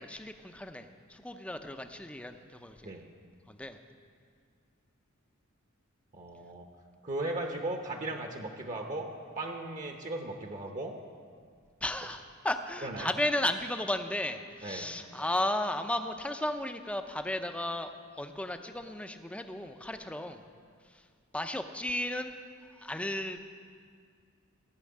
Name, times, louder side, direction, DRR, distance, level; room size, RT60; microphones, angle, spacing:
voice 1, 0.0-2.9 3.5-3.8 11.8-20.4 20.9-21.0 21.3-22.4 22.8-23.4, left 1 dB, 5° left, 7 dB, 0.6 m, -34 dB
voice 2, 6.1-6.7 7.0-11.0 12.8-13.1 14.6-14.9, right 2 dB, 35° right, 3 dB, 0.9 m, -37 dB
15.0 x 6.3 x 8.5 m, 2.1 s
head